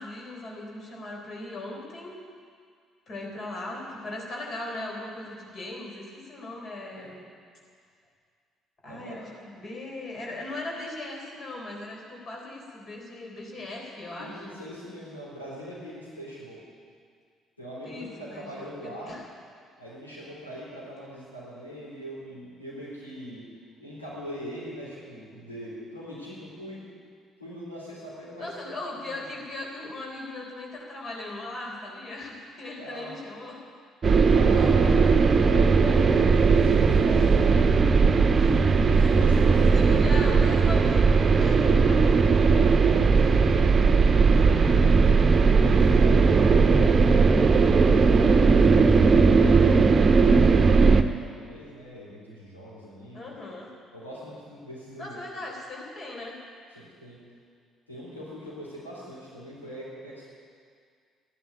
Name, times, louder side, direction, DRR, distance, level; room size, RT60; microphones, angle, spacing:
voice 1, 0.0-2.1 3.1-7.2 8.8-14.6 17.8-19.2 28.4-33.6 34.5-34.8 35.0-35.1 36.4-36.5 38.4-38.5 39.5-42.2 53.1-53.7 55.0-56.4, left 2 dB, 40° left, -1 dB, 3.8 m, -38 dB
voice 2, 8.9-9.2 14.2-16.6 17.6-19.1 19.8-23.5 23.8-26.8 27.4-29.0 32.8-33.1 34.3-35.2 35.4-38.4 38.8-40.2 42.3-43.2 44.3-53.3 53.9-55.2 56.7-57.2 57.9-60.3, equal, 85° left, -7 dB, 3.7 m, -41 dB
sound 1, 34.0-51.0, right 4 dB, 35° right, 0.9 m, -18 dB
14.5 x 11.5 x 8.6 m, 2.1 s
figure-of-eight pair, 50°, 0 cm